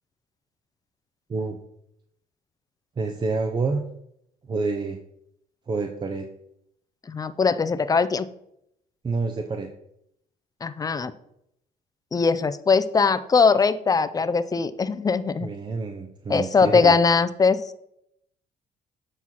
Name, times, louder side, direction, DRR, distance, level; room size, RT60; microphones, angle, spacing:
voice 1, 3.0-3.8 4.4-5.0 5.7-6.3 9.0-9.7 15.4-17.0, right 4 dB, 25° right, 4 dB, 0.7 m, -28 dB
voice 2, 7.1-8.3 10.6-11.1 12.1-15.5 16.3-17.6, left 5 dB, 20° left, 13 dB, 0.5 m, -21 dB
8.3 x 4.5 x 5.7 m, 0.76 s
cardioid pair, 110°, 17 cm